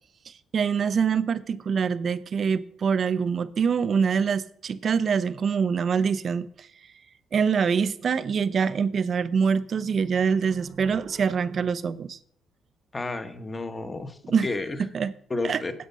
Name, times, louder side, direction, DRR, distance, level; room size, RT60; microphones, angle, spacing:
voice 1, 0.3-6.7 7.3-12.2 14.3-14.5 14.8-15.1 15.4-15.6, right 6 dB, 50° right, 0.6 m, -25 dB
voice 2, 12.9-14.8 15.3-15.7, left 2 dB, 25° left, 1.1 m, -31 dB
9.5 x 7.9 x 5.5 m
cardioid pair, 85°, 0 cm